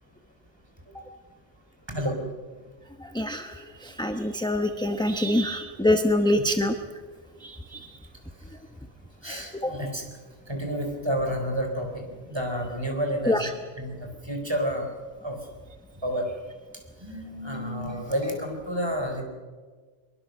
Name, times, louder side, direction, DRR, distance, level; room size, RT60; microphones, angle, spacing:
voice 1, 1.9-2.2 6.4-6.5 9.2-10.0 10.5-13.5 13.8-14.9 15.2-15.4 16.0-16.3 17.0-19.2, equal, 20° right, 3 dB, 4.5 m, -30 dB
voice 2, 3.1-6.7 7.4-7.9 9.6-9.7 13.2-13.5, left 1 dB, 5° left, 7 dB, 0.9 m, -25 dB
24.0 x 22.5 x 6.7 m, 1.5 s
omnidirectional pair, 1.2 m